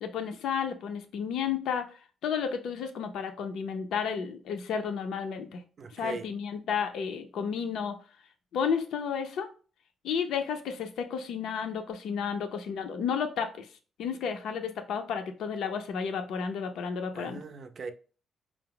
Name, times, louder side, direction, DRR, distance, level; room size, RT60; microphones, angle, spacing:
voice 1, 0.0-1.9 2.2-5.6 5.9-8.0 8.5-9.5 10.0-13.7 14.0-17.4, left 6 dB, 75° left, 0.6 m, -32 dB
voice 2, 5.8-6.3 17.1-17.9, right 4 dB, 50° right, 0.5 m, -39 dB
4.7 x 2.0 x 3.7 m
cardioid pair, 90°, 0 cm